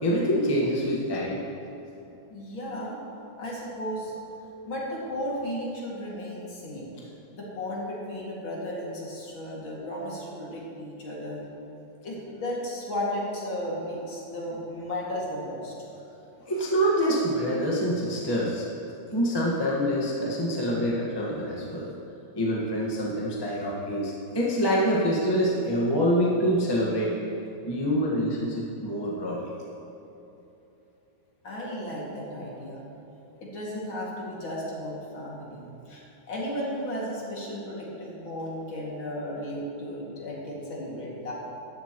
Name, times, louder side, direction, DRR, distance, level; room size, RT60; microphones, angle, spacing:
voice 1, 0.0-1.4 16.5-18.7 19.1-21.9 22.4-27.1 27.7-29.5, equal, 15° left, -5 dB, 1.3 m, -26 dB
voice 2, 2.3-3.0 3.4-4.1 4.7-6.9 7.3-11.4 12.0-15.7 16.4-16.7 31.4-32.9 33.4-41.3, equal, 70° left, -5 dB, 3.1 m, -34 dB
14.5 x 11.5 x 3.1 m, 2.9 s
omnidirectional pair, 2.3 m